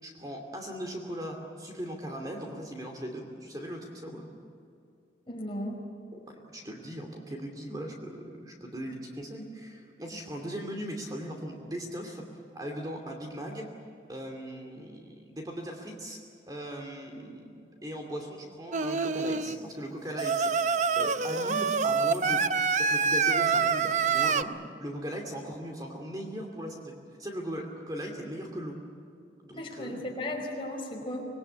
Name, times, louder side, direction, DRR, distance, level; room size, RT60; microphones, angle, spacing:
voice 1, 0.0-4.3 6.1-12.2 12.5-13.6 14.1-16.2 16.5-22.4 22.7-24.5 24.8-26.9 27.2-28.8 29.4-30.0, equal, 20° right, 2 dB, 2.6 m, -39 dB
voice 2, 5.3-5.8 29.5-31.3, left 1 dB, 30° left, 0 dB, 5.0 m, -35 dB
Singing, 18.7-19.6 20.2-24.4, right 5 dB, 40° right, 0.7 m, -26 dB
26.0 x 21.0 x 8.4 m, 2.4 s
head